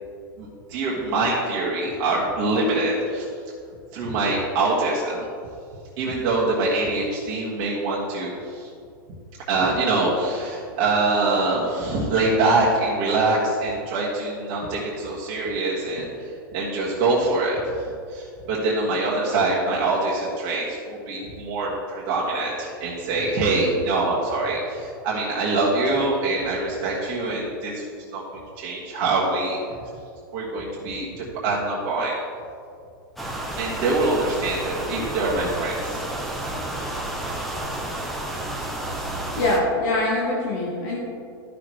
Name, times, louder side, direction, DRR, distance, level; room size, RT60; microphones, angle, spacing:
voice 1, 0.4-3.2 3.9-5.3 6.0-8.7 9.5-17.8 18.1-27.8 28.1-29.6 30.3-32.1 33.6-36.0, right 2 dB, 40° right, -6 dB, 1.7 m, -24 dB
sound 1, 33.2-39.6, right 1 dB, ahead, 0.9 m, -31 dB
voice 2, 39.3-41.0, left 2 dB, 55° left, -4 dB, 1.5 m, -23 dB
13.0 x 6.0 x 3.2 m, 2.4 s
supercardioid pair, 145°, 12 cm